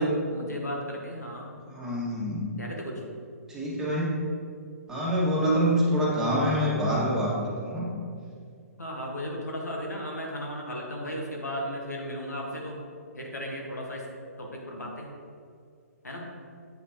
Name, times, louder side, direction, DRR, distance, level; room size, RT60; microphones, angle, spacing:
voice 1, 0.0-1.5 2.5-3.0 5.4-5.8 8.8-12.8 13.1-14.1 14.4-15.1 16.0-16.3, equal, 85° left, -1 dB, 1.7 m, -35 dB
voice 2, 1.7-2.4 3.5-4.2 4.9-7.9, equal, 5° right, -7 dB, 2.0 m, -26 dB
8.0 x 7.3 x 3.1 m, 2.2 s
figure-of-eight pair, 125°, 9 cm